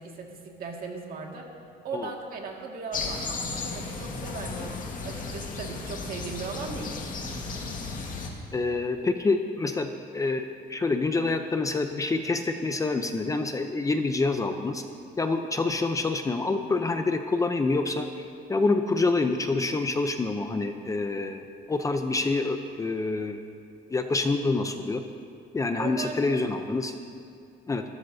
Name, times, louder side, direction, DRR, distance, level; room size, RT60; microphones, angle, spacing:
voice 1, 0.0-1.5 1.8-4.7 5.0-7.0 25.7-26.4, right 4 dB, 55° right, 0 dB, 2.1 m, -38 dB
sound 1, 2.9-8.3, left 4 dB, 50° left, 2.0 m, -34 dB
voice 2, 8.5-14.8 15.2-18.1 18.5-23.4 23.9-25.0 25.5-26.9 27.7-27.8, left 3 dB, 20° left, 6 dB, 0.6 m, -27 dB
24.5 x 13.0 x 2.8 m, 2.3 s
cardioid pair, 135°, 18 cm